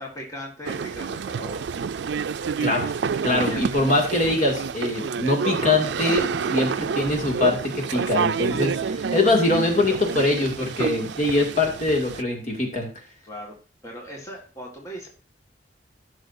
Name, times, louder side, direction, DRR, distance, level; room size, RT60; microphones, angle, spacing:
voice 1, 0.0-1.6 3.4-3.6 13.2-13.5 13.8-15.1, equal, 20° left, -2 dB, 1.7 m, -38 dB
sound 1, 0.6-12.2, right 6 dB, 80° right, 0.4 m, -28 dB
voice 2, 3.2-12.9, left 2 dB, 45° left, 1 dB, 2.2 m, -23 dB
15.0 x 6.3 x 2.6 m, 0.35 s
head